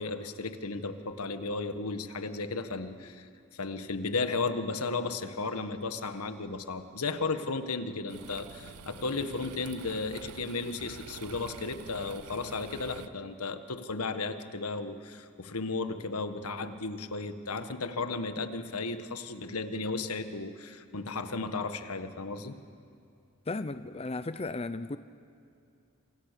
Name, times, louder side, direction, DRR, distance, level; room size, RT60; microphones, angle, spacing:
voice 1, 0.0-3.2 3.5-22.5, left 3 dB, 90° left, 9 dB, 1.5 m, -34 dB
sound 1, 8.1-13.1, right 6 dB, 90° right, 0.7 m, -47 dB
voice 2, 23.5-25.0, left 3 dB, 25° left, 11 dB, 0.6 m, -35 dB
27.0 x 26.5 x 6.8 m, 2.5 s
head